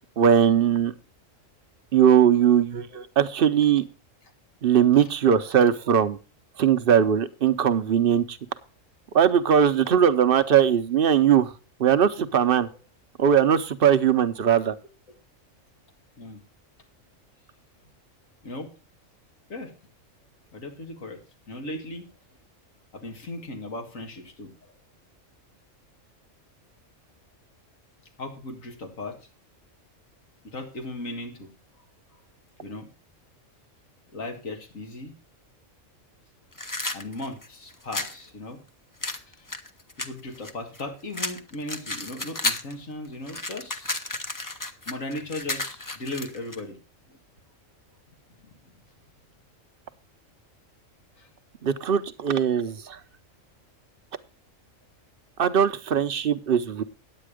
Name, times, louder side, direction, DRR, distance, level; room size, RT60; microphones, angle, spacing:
voice 1, 0.2-0.9 1.9-3.8 4.6-6.2 6.6-8.4 9.1-11.5 11.8-12.7 13.2-14.7 51.6-53.0 55.4-56.8, right 8 dB, 50° right, 11 dB, 0.8 m, -20 dB
voice 2, 20.5-22.1 22.9-24.7 28.2-29.2 30.4-31.5 32.6-32.9 34.1-35.2 36.9-38.6 39.3-39.5 40.0-44.0 44.9-46.8 47.1-47.2 48.7-48.8 51.2-51.3 52.5-52.6, left 2 dB, 85° left, 3 dB, 2.3 m, -37 dB
sound 1, 36.5-38.2 39.0-40.8 41.1-42.7 43.0-46.6, left 2 dB, 20° left, 0.6 m, -32 dB
9.9 x 8.6 x 4.9 m, 0.33 s
omnidirectional pair, 1.3 m